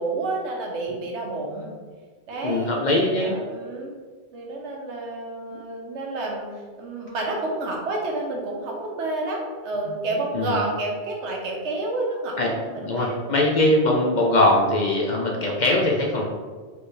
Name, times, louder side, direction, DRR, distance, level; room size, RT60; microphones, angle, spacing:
voice 1, 0.0-1.7 2.3-3.9 4.3-6.5 6.8-13.4 13.7-13.8, right 2 dB, 90° right, 0 dB, 1.1 m, -30 dB
voice 2, 2.4-3.4 5.5-5.6 10.3-10.6 12.4-12.5 12.8-16.3, left 1 dB, 55° left, 0 dB, 0.6 m, -21 dB
4.3 x 3.2 x 3.2 m, 1.5 s
omnidirectional pair, 1.1 m